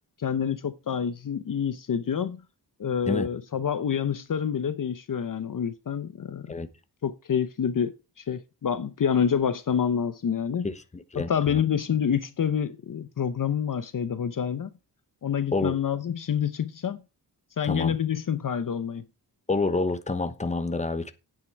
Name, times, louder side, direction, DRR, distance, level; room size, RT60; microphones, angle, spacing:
voice 1, 0.2-2.4 2.8-6.5 7.0-7.9 8.2-10.7 11.1-14.7 15.2-17.0 17.6-19.0, left 8 dB, 50° left, 0.8 m, -27 dB
voice 2, 10.6-11.6 15.5-15.7 17.6-17.9 19.5-21.1, left 3 dB, 15° left, 1.0 m, -28 dB
9.3 x 8.7 x 4.6 m
wide cardioid pair, 125°, 41 cm